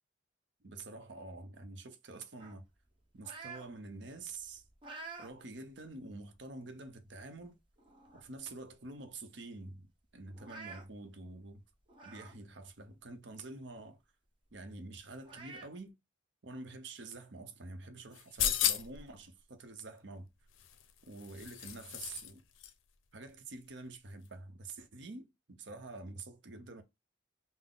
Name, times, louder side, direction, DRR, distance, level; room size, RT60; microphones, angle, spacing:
voice 1, 0.6-2.7 3.1-4.6 5.2-7.6 8.1-9.9 10.1-11.6 12.0-14.0 14.5-15.9 16.4-20.3 21.1-22.4 23.1-26.8, right 3 dB, 65° right, 0.7 m, -47 dB
sound 1, 2.4-3.7 4.1-5.3 5.8-6.0 6.8-6.9 7.4-7.5 7.8-8.4 8.7-8.8 9.1-9.2 10.3-10.8 11.9-12.4 12.8-12.9 14.5-14.6 15.2-15.7, right 3 dB, 25° right, 0.8 m, -49 dB
sound 2, 18.1-19.1 20.6-22.3 22.6-22.7, left 10 dB, 80° left, 0.5 m, -34 dB
3.8 x 2.0 x 3.8 m
head